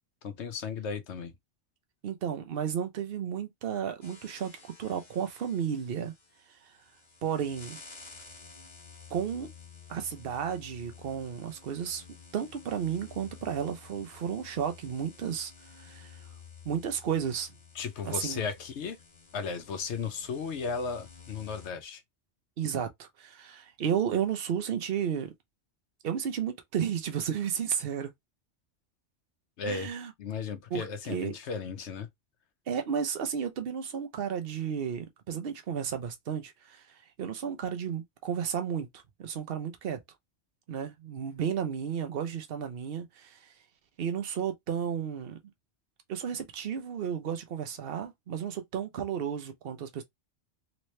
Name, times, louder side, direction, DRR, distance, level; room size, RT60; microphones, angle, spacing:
voice 1, 0.2-1.3 17.7-19.0 19.3-22.0 29.6-29.9 30.2-32.1, left 5 dB, 75° left, 1.0 m, -35 dB
voice 2, 2.0-6.1 6.6-6.7 7.2-7.8 9.1-9.5 9.9-12.0 12.3-15.5 15.8-16.2 16.6-17.5 18.0-18.4 22.6-25.3 26.0-28.1 29.7-30.1 30.7-31.3 32.7-36.8 37.2-40.0 40.7-43.5 44.0-45.4 46.1-50.0, right 8 dB, 60° right, 0.9 m, -33 dB
sound 1, 4.0-21.7, left 5 dB, 40° left, 1.3 m, -52 dB
3.2 x 2.9 x 3.2 m
omnidirectional pair, 1.2 m